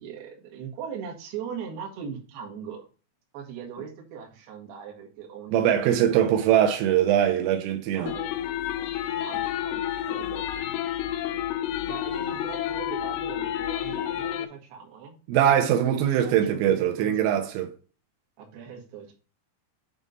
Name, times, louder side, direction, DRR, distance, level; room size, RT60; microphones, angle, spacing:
voice 1, 0.0-2.8 3.3-6.2 6.9-7.0 7.9-8.3 9.2-10.8 11.9-15.2 15.8-17.5 18.4-19.1, right 7 dB, 60° right, 3.2 m, -39 dB
voice 2, 5.5-8.1 15.3-17.7, right 10 dB, 85° right, 3.4 m, -22 dB
sound 1, 8.1-14.5, left 11 dB, 80° left, 3.1 m, -30 dB
9.4 x 3.7 x 4.0 m
omnidirectional pair, 5.8 m